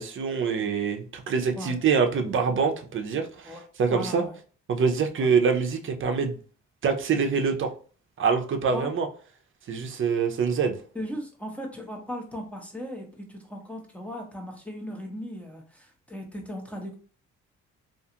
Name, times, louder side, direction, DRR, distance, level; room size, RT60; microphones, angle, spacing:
voice 1, 0.0-4.2 4.7-6.4 6.8-7.7 8.2-9.1 9.7-10.8, right 5 dB, 40° right, 4 dB, 0.6 m, -25 dB
voice 2, 3.9-4.3 5.2-5.3 8.7-8.9 10.9-17.0, equal, 5° left, 1 dB, 0.7 m, -37 dB
2.5 x 2.3 x 2.8 m, 0.40 s
cardioid pair, 90°, 30 cm